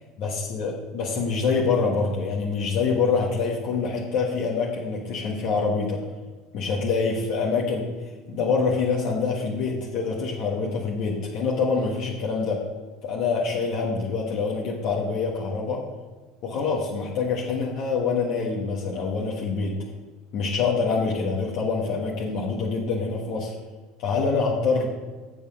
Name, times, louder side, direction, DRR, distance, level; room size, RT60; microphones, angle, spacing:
voice 1, 0.2-6.0 6.5-7.8 8.3-12.6 13.0-15.8 16.4-19.8 20.3-23.5 24.0-24.9, left 4 dB, 60° left, -3 dB, 1.5 m, -25 dB
7.0 x 6.4 x 6.4 m, 1.3 s
hypercardioid pair, 90°, 0 cm